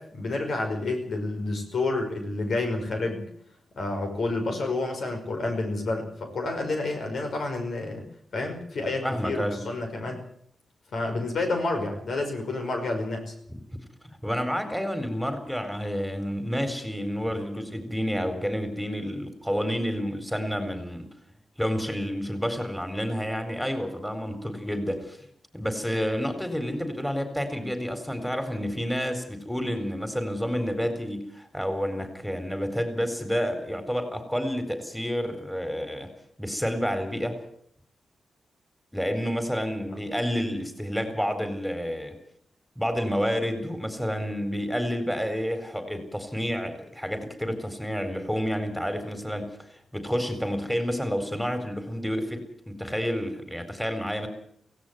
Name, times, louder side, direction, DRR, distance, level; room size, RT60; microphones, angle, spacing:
voice 1, 0.0-3.3 3.8-8.1 8.3-10.2 10.9-13.3, left 2 dB, 70° left, 4 dB, 5.4 m, -29 dB
voice 2, 9.0-9.6 14.0-21.1 21.6-25.3 25.5-36.1 36.4-37.4 38.9-42.2 42.8-54.3, equal, 5° left, 8 dB, 4.3 m, -29 dB
17.0 x 17.0 x 9.3 m, 0.66 s
cardioid pair, 70°, 0 cm